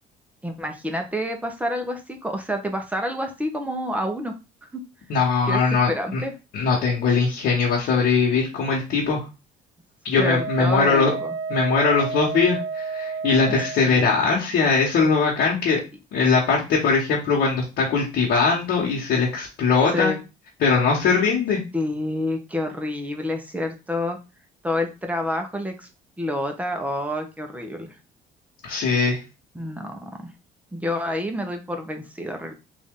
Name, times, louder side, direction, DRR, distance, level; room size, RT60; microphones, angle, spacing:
voice 1, 0.4-4.3 4.7-4.8 5.5-5.6 5.9-6.3 10.2-11.3 13.8-14.1 19.9-20.2 21.7-24.2 24.6-25.9 26.2-27.9 29.5-30.2 30.7-32.5, left 1 dB, 10° right, 4 dB, 0.8 m, -28 dB
voice 2, 5.1-6.2 6.5-9.2 10.0-11.1 11.5-15.8 16.1-20.1 20.6-21.6 28.6-29.2, left 4 dB, 70° left, -4 dB, 1.2 m, -21 dB
Wind instrument woodwind instrument, 10.2-13.9, right 5 dB, 90° right, 0.5 m, -31 dB
3.5 x 2.6 x 3.6 m, 0.29 s
cardioid pair, 110°, 17 cm